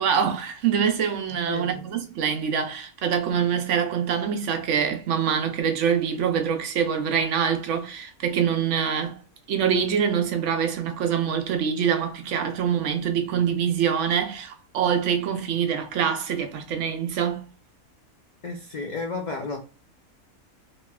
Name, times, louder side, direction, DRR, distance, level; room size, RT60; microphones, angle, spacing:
voice 1, 0.0-9.2 9.5-17.4, right 7 dB, 70° right, 0.8 m, -25 dB
voice 2, 1.4-1.8 18.4-19.6, left 3 dB, 85° left, 0.4 m, -32 dB
2.9 x 2.8 x 2.3 m
omnidirectional pair, 1.4 m